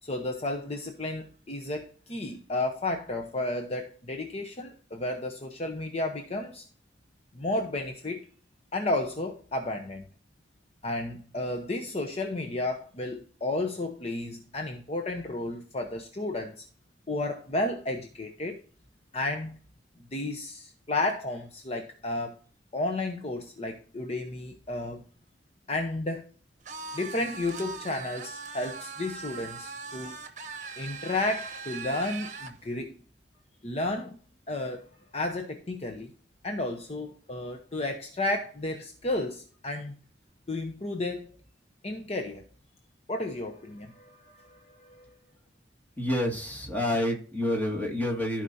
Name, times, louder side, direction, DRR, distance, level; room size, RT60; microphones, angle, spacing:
voice 1, 0.0-6.6 7.3-8.2 8.7-10.1 10.8-16.6 17.1-18.6 19.1-19.6 20.0-22.4 22.7-25.0 25.7-26.3 26.9-30.2 30.8-33.0 33.6-34.2 34.5-34.9 35.1-36.1 36.4-40.0 40.5-41.3 41.8-42.4 43.1-45.2, left 2 dB, 35° left, 4 dB, 0.8 m, -32 dB
sound 1, 26.6-32.6, right 4 dB, 45° right, 1.1 m, -40 dB
voice 2, 46.0-48.4, left 1 dB, 10° left, 1 dB, 2.1 m, -28 dB
14.5 x 5.0 x 2.7 m, 0.43 s
head